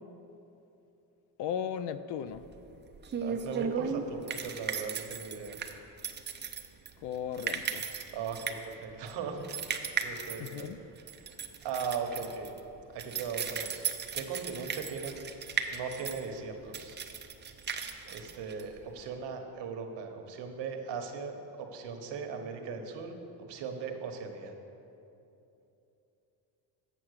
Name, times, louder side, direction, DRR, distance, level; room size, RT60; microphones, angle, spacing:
voice 1, 1.4-2.4 7.0-7.9 10.4-10.8, left 8 dB, 60° left, 13 dB, 0.5 m, -36 dB
sound 1, 2.3-19.1, right 6 dB, 25° right, 0.5 m, -37 dB
voice 2, 3.2-5.6 8.1-9.6 10.0-10.7 11.6-12.5 12.9-13.7 14.1-15.2 15.7-17.0 18.0-23.1 23.4-24.5, right 5 dB, 60° right, 5 dB, 1.2 m, -38 dB
7.9 x 5.8 x 6.5 m, 2.9 s
cardioid pair, 100°, 48 cm